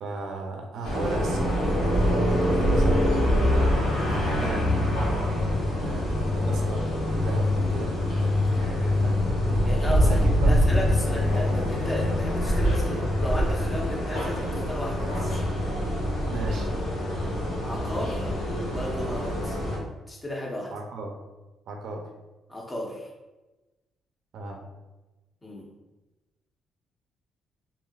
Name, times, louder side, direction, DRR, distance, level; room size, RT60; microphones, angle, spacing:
voice 1, 0.0-3.2 4.1-4.7 5.8-9.2 10.0-10.8 16.2-16.7 20.7-21.2 21.7-22.1 24.3-24.7, right 3 dB, 70° right, 2 dB, 0.4 m, -36 dB
sound 1, 0.8-19.8, left 1 dB, 85° left, 1.0 m, -24 dB
voice 2, 9.6-15.4 16.5-16.7 17.6-18.3 18.7-19.6 20.1-20.7 22.5-23.1 25.4-25.7, left 1 dB, 15° left, -2 dB, 0.8 m, -34 dB
3.2 x 2.7 x 2.3 m, 1.1 s
cardioid pair, 90°, 0 cm